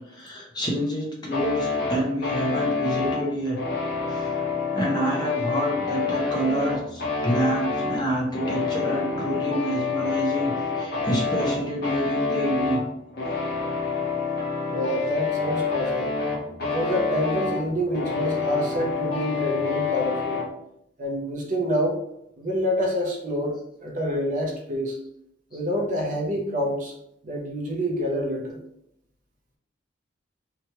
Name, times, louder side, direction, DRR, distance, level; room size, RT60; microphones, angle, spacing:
voice 1, 0.0-3.6 4.1-4.4 4.7-12.8 25.5-25.6, right 1 dB, 20° left, -2 dB, 0.6 m, -27 dB
sound 1, 1.3-20.5, left 4 dB, 55° left, 0.9 m, -28 dB
voice 2, 14.7-16.1 16.6-20.4 21.0-22.0 22.4-25.0 25.5-26.9 27.2-28.6, equal, 40° right, 0 dB, 0.6 m, -27 dB
2.9 x 2.2 x 2.9 m, 0.76 s
head